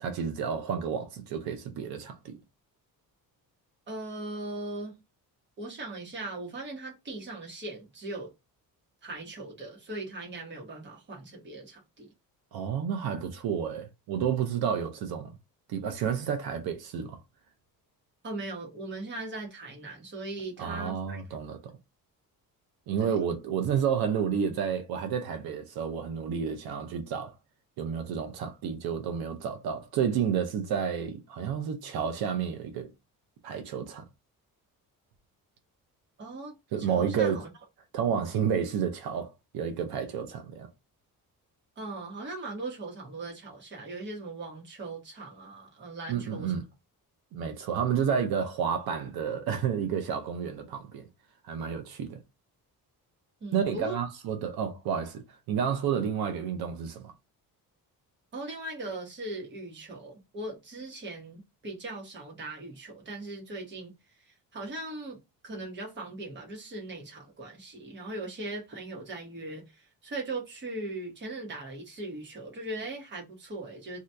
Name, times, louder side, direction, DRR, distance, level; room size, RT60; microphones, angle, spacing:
voice 1, 0.0-2.3 12.5-15.4 15.7-17.2 20.6-21.7 22.9-27.3 27.8-32.9 33.4-34.1 36.7-37.4 37.9-40.7 46.1-46.6 47.3-51.0 51.4-52.2 53.5-57.1, right 7 dB, 80° right, 0.7 m, -30 dB
voice 2, 3.9-4.9 5.6-8.3 9.0-12.1 18.2-21.2 23.0-23.2 36.2-37.5 41.8-46.5 53.4-54.0 58.3-63.9 64.5-65.2 65.4-74.0, right 2 dB, 30° right, 1.0 m, -39 dB
2.8 x 2.4 x 3.3 m
cardioid pair, 175°, 36 cm